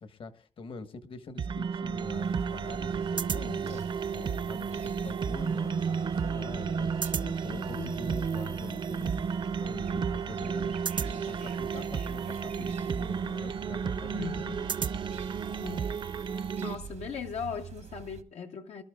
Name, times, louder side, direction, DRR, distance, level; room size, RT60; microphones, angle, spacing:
voice 1, 0.0-9.2 9.6-14.9, left 3 dB, 50° left, 1.3 m, -45 dB
sound 1, 1.4-16.8, right 6 dB, 45° right, 0.6 m, -32 dB
sound 2, 1.9-18.2, right 8 dB, 90° right, 1.4 m, -45 dB
voice 2, 7.5-8.0 14.1-14.6 15.6-15.9 16.6-18.8, left 6 dB, 75° left, 1.0 m, -39 dB
25.0 x 12.5 x 2.4 m
wide cardioid pair, 145°, 11 cm